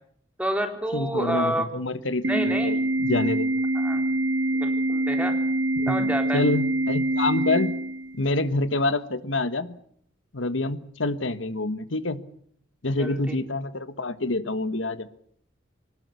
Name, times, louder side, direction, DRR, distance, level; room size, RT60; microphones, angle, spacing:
voice 1, 0.4-1.6 2.3-2.7 3.7-4.1 4.5-5.4 5.9-6.4 13.0-13.4, right 1 dB, 5° right, 4 dB, 3.7 m, -29 dB
voice 2, 0.9-3.5 5.8-7.8 8.2-9.7 10.3-12.2 12.8-15.1, left 2 dB, 90° left, 12 dB, 1.5 m, -27 dB
Organ, 2.2-8.3, right 1 dB, 65° right, 1.2 m, -25 dB
23.5 x 19.5 x 8.4 m, 0.63 s
head